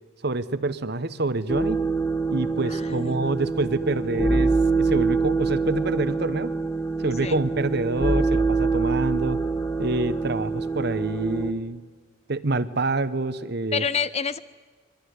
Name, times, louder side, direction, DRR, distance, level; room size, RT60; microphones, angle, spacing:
voice 1, 0.2-1.8 2.3-6.5 7.0-9.4 9.8-11.8 12.3-13.8, right 2 dB, 60° right, 13 dB, 1.1 m, -27 dB
sound 1, 1.5-11.5, right 3 dB, 15° left, 1.9 m, -25 dB
voice 2, 2.7-3.3 7.2-7.4 13.7-14.4, left 6 dB, 35° left, 15 dB, 0.8 m, -28 dB
25.0 x 22.5 x 9.7 m, 1.5 s
head